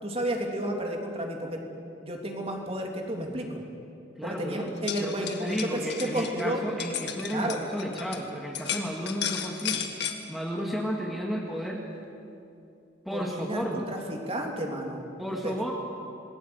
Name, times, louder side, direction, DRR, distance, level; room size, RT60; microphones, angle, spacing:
voice 1, 0.0-1.6 2.0-3.6 4.2-6.6 7.3-7.6 13.1-15.1 15.4-15.5, right 1 dB, 30° right, 1 dB, 3.0 m, -32 dB
voice 2, 4.2-9.9 10.3-11.8 13.0-13.9 15.2-15.7, equal, ahead, -1 dB, 1.9 m, -33 dB
sound 1, 4.7-8.2 8.5-10.2, left 9 dB, 60° left, 1.8 m, -34 dB
27.0 x 20.5 x 8.0 m, 2.7 s
head